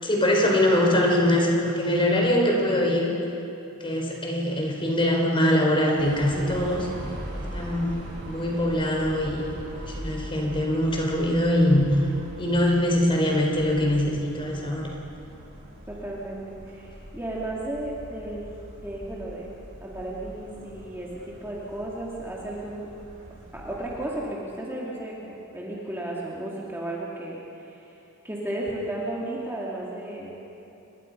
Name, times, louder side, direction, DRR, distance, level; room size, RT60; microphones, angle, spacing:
voice 1, 0.0-3.1 3.8-6.9 7.3-8.0 8.2-11.9 12.4-14.9, left 1 dB, 25° left, -1 dB, 4.4 m, -23 dB
sound 1, 6.0-24.1, equal, 65° right, 7.6 m, -41 dB
voice 2, 15.9-18.5 18.8-19.5 19.8-22.9 23.5-28.0 28.2-30.3, right 1 dB, 10° right, -5 dB, 2.7 m, -34 dB
28.5 x 22.5 x 5.5 m, 2.8 s
head